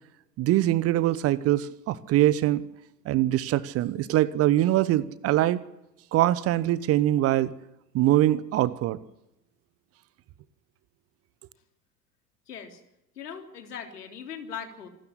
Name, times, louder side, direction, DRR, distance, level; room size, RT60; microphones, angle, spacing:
voice 1, 0.4-2.6 3.0-5.6 6.1-7.5 7.9-9.0, right 14 dB, 30° right, 19 dB, 0.9 m, -23 dB
voice 2, 12.5-12.8 13.2-14.9, left 7 dB, 65° left, 6 dB, 3.7 m, -39 dB
26.5 x 13.0 x 9.7 m, 0.89 s
figure-of-eight pair, 85°, 49 cm